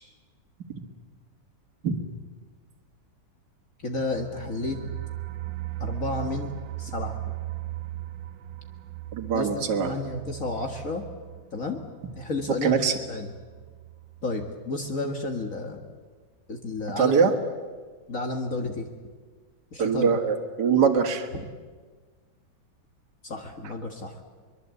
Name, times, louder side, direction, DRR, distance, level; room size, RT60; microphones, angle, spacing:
voice 1, 3.8-4.9 5.8-7.2 9.3-11.0 11.5-11.8 12.2-13.3 14.2-15.8 16.5-17.3 18.1-18.9 19.7-20.2 21.3-21.4 23.2-24.2, left 2 dB, 45° left, 4 dB, 1.9 m, -32 dB
sound 1, 3.8-14.5 14.8-14.9 15.3-15.4, right 15 dB, 80° right, 1.6 m, -38 dB
voice 2, 9.1-10.0 12.6-12.9 17.0-17.3 19.8-21.3, right 6 dB, 60° right, 4 dB, 2.2 m, -22 dB
23.5 x 22.0 x 8.2 m, 1.5 s
omnidirectional pair, 2.1 m